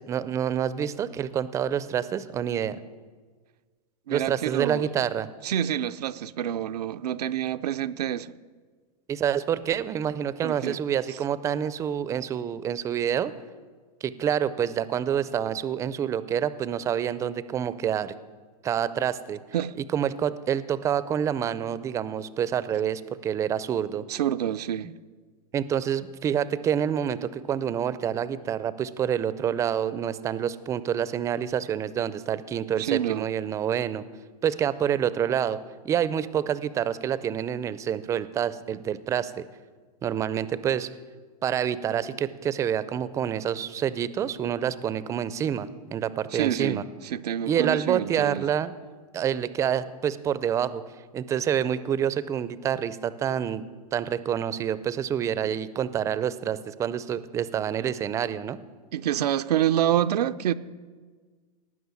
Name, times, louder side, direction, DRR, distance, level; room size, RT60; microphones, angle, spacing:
voice 1, 0.0-2.8 4.1-5.3 9.1-13.3 14.0-18.1 18.6-19.4 19.9-24.0 25.5-34.1 34.4-35.6 35.8-39.5 40.0-40.9 41.4-46.8 47.5-48.7 49.1-50.8 51.1-53.6 53.9-58.6, right 9 dB, 15° right, 0.4 m, -27 dB
voice 2, 4.1-4.9 5.4-8.3 10.4-10.8 19.5-19.7 24.1-24.9 32.8-33.3 46.3-48.5 58.9-60.5, right 11 dB, 90° right, 0.6 m, -27 dB
18.0 x 6.2 x 9.5 m
supercardioid pair, 145°, 20 cm